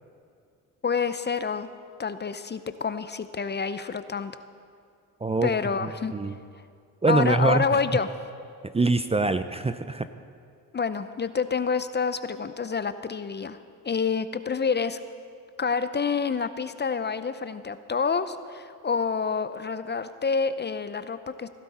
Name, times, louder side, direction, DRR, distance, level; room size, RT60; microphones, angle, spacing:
voice 1, 0.8-1.7 2.0-4.4 5.4-6.1 7.1-8.1 10.7-13.6 13.8-15.0 15.6-21.5, left 5 dB, 25° left, 12 dB, 0.6 m, -28 dB
voice 2, 7.0-7.6 8.7-10.1, right 3 dB, 15° right, 11 dB, 0.6 m, -23 dB
16.5 x 15.0 x 4.3 m, 2.3 s
supercardioid pair, 70°, 38 cm